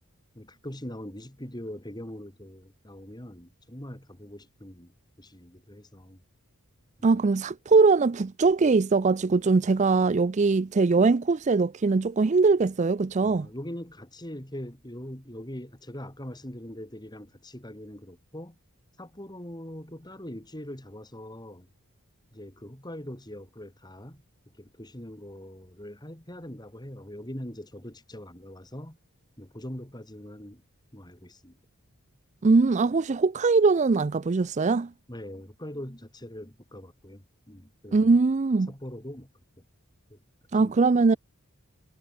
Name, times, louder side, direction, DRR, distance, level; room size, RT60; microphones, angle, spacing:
voice 1, 0.3-4.9 5.2-6.2 7.0-7.1 13.2-18.5 19.0-21.7 22.3-24.2 24.6-29.0 29.4-30.6 30.9-31.6 35.1-38.1 38.7-39.3 40.1-40.2 40.5-40.8, equal, 20° left, 4.6 m, -42 dB
voice 2, 7.0-13.5 32.4-34.9 37.9-38.7 40.5-41.2, right 4 dB, 30° right, 0.4 m, -21 dB
head